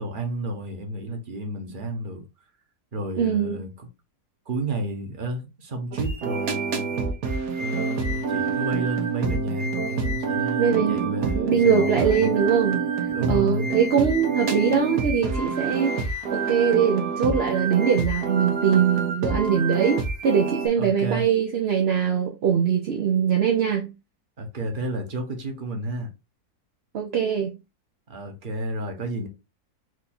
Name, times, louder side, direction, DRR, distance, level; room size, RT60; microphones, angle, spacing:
voice 1, 0.0-2.2 2.9-3.9 4.5-6.9 7.6-12.3 13.1-13.7 20.8-21.3 24.4-26.1 28.1-29.3, right 1 dB, 35° right, 1.1 m, -31 dB
voice 2, 3.2-3.6 10.6-12.8 13.3-23.9 26.9-27.6, right 7 dB, 55° right, 0.8 m, -22 dB
sound 1, 5.9-20.7, right 4 dB, 90° right, 1.6 m, -27 dB
4.6 x 2.6 x 4.2 m
omnidirectional pair, 1.7 m